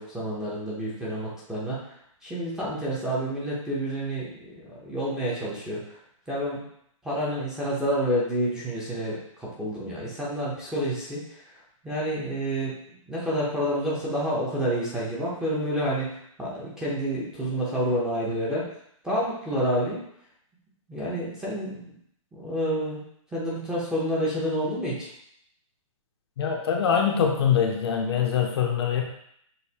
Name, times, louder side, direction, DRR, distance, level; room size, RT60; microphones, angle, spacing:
voice 1, 0.0-1.8 2.2-4.3 4.8-6.0 6.3-6.6 7.0-11.2 11.8-12.7 13.0-18.7 19.0-20.0 20.9-21.9 22.3-23.0 23.3-25.1, equal, 5° right, -7 dB, 0.7 m, -28 dB
voice 2, 26.4-29.0, left 7 dB, 50° left, 1 dB, 0.6 m, -23 dB
6.4 x 2.5 x 2.8 m, 0.70 s
hypercardioid pair, 165°, 18 cm